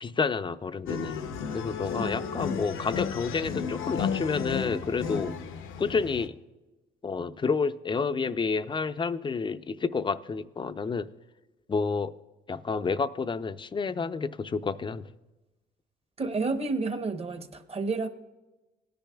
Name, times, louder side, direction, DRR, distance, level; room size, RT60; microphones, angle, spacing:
voice 1, 0.0-5.3 5.8-6.4 7.0-11.1 11.7-12.1 12.5-15.1, left 5 dB, 25° left, 13 dB, 0.4 m, -29 dB
sound 1, 0.9-6.3, left 6 dB, 80° left, 0.7 m, -33 dB
voice 2, 2.0-2.6 16.2-18.1, right 3 dB, 30° right, 8 dB, 0.8 m, -31 dB
17.0 x 10.0 x 2.3 m, 1.1 s
cardioid pair, 90°, 20 cm